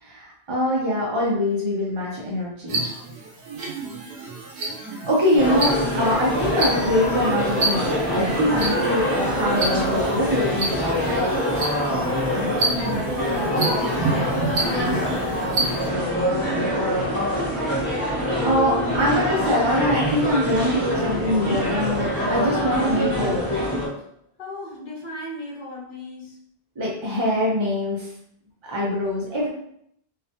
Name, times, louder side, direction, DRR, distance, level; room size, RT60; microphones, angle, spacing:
voice 1, 0.0-2.8 4.8-11.1 18.1-23.5 26.8-28.1 28.7-29.5, left 1 dB, 40° right, -5 dB, 0.4 m, -23 dB
sound 1, 2.7-15.9, right 3 dB, 90° right, 0.9 m, -30 dB
sound 2, 5.4-23.9, left 1 dB, 15° left, 0.8 m, -24 dB
voice 2, 12.2-12.7 13.0-16.5 24.4-26.4, left 2 dB, 55° left, -4 dB, 0.8 m, -38 dB
2.9 x 2.1 x 2.7 m, 0.72 s
omnidirectional pair, 1.1 m